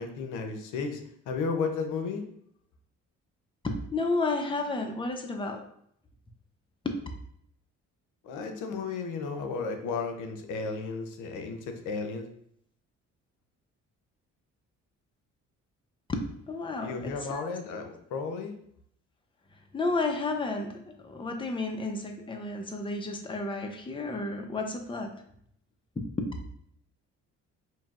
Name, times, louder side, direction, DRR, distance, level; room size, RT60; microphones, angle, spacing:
voice 1, 0.0-2.2 8.2-12.3 16.8-18.5, left 4 dB, 85° left, 5 dB, 0.7 m, -33 dB
voice 2, 3.6-5.6 6.8-7.0 16.1-17.4 19.7-25.1 26.0-26.3, left 2 dB, 15° left, 4 dB, 0.6 m, -32 dB
5.5 x 2.7 x 2.4 m, 0.68 s
cardioid pair, 90°, 30 cm